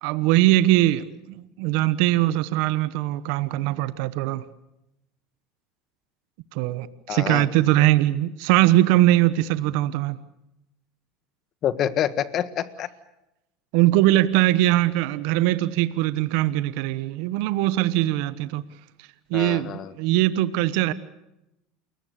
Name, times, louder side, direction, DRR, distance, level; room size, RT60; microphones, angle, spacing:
voice 1, 0.0-4.4 6.5-10.2 13.7-18.6 19.3-20.9, right 15 dB, 70° right, 1.1 m, -21 dB
voice 2, 7.1-7.5 11.6-12.9 19.3-19.9, left 10 dB, 40° left, 1.6 m, -27 dB
28.5 x 22.5 x 6.7 m
supercardioid pair, 145°, 0 cm